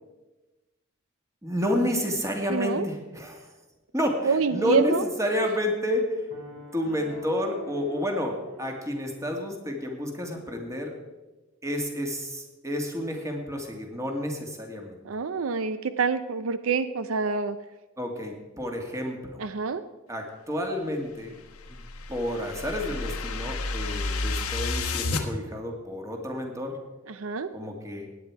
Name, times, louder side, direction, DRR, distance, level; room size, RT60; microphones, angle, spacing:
voice 1, 1.4-3.5 3.9-6.3 6.7-10.9 11.6-15.0 18.0-19.4 20.1-21.4 21.7-21.8 22.1-26.8 27.5-28.1, left 1 dB, 15° right, 2 dB, 2.0 m, -30 dB
voice 2, 2.5-2.9 4.2-5.0 15.1-17.6 19.4-19.8 27.2-27.5, right 5 dB, 65° right, 12 dB, 0.5 m, -26 dB
sound 1, 6.3-9.5, right 2 dB, 50° right, 4.6 m, -45 dB
sound 2, 21.2-25.2, left 3 dB, 90° left, 1.3 m, -31 dB
17.0 x 9.9 x 4.7 m, 1.1 s
head